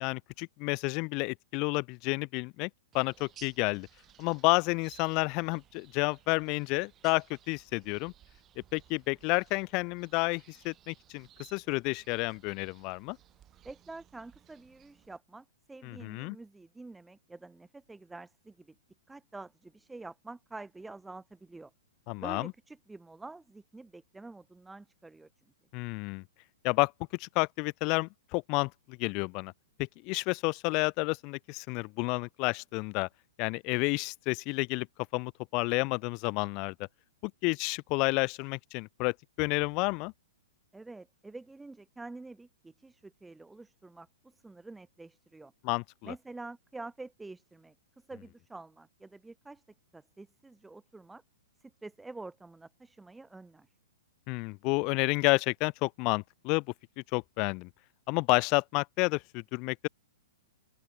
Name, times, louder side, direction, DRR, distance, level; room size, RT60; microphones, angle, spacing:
voice 1, 0.0-2.7 2.9-3.9 4.2-8.1 8.7-13.2 15.8-16.4 22.1-22.5 25.7-26.2 26.6-29.5 29.8-33.1 33.4-34.9 35.1-36.7 37.2-40.1 45.6-46.1 54.3-56.6 57.1-57.7 58.1-59.9, left 29 dB, 40° left, 0.8 m, -30 dB
sound 1, 2.9-15.2, right 11 dB, 25° right, 7.0 m, -59 dB
voice 2, 13.6-18.7 19.1-21.7 22.2-25.3 40.7-45.5 46.0-47.7 48.1-49.6 49.9-51.2 51.6-53.7, right 3 dB, 5° right, 3.7 m, -47 dB
open air
hypercardioid pair, 125°, 0 cm